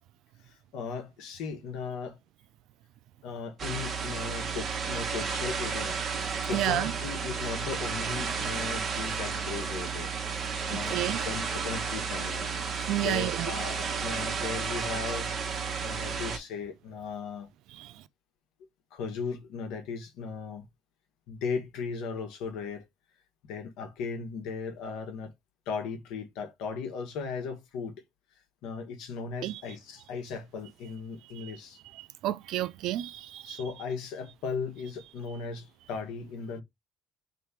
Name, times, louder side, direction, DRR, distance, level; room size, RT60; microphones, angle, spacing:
voice 1, 0.4-2.2 3.2-6.0 6.5-10.1 10.7-12.5 13.0-15.3 15.8-17.5 18.9-20.7 21.3-22.9 23.4-25.3 25.7-28.0 28.6-31.8 33.4-36.6, left 5 dB, 75° left, 1.3 m, -37 dB
sound 1, 3.6-16.4, right 5 dB, 45° right, 1.1 m, -32 dB
voice 2, 6.5-6.9 10.9-11.2 12.9-13.5 17.8-17.9 29.4-29.6 31.4-31.5 31.9-33.6, right 14 dB, 70° right, 0.4 m, -31 dB
3.3 x 3.1 x 4.3 m
supercardioid pair, 70°, 0 cm